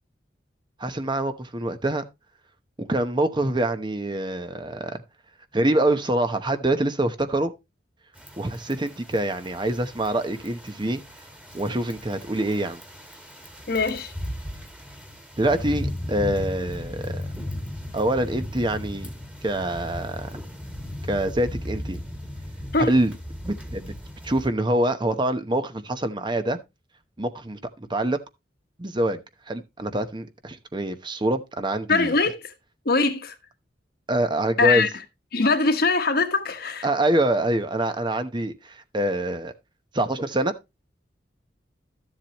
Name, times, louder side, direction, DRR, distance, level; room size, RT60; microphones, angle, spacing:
voice 1, 0.8-2.0 2.8-5.0 5.5-7.5 8.4-11.0 11.5-12.8 15.4-17.2 17.9-19.1 19.4-20.4 21.1-22.0 22.8-23.1 23.4-23.9 24.2-26.6 27.2-28.2 28.8-29.2 29.5-32.2 34.1-34.9 36.8-39.5 39.9-40.5, right 1 dB, 25° right, 0.9 m, -25 dB
sound 1, 8.2-24.5, left 1 dB, 5° right, 1.8 m, -36 dB
voice 2, 13.7-14.1 22.7-22.9 31.9-32.5 32.8-33.3 34.6-34.9 35.3-36.9, left 4 dB, 60° left, 1.4 m, -22 dB
13.0 x 7.4 x 3.0 m
head